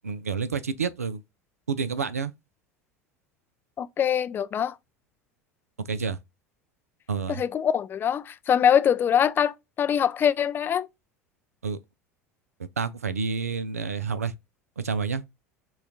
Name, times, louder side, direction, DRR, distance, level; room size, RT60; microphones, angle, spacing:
voice 1, 0.0-1.2 1.7-2.3 5.9-6.2 7.1-7.4 11.6-11.8 12.8-14.3 14.8-15.2, right 5 dB, 80° right, 0.4 m, -29 dB
voice 2, 3.8-4.8 7.3-10.9, left 8 dB, 25° left, 0.3 m, -23 dB
5.6 x 2.3 x 2.6 m
figure-of-eight pair, 75°, 8 cm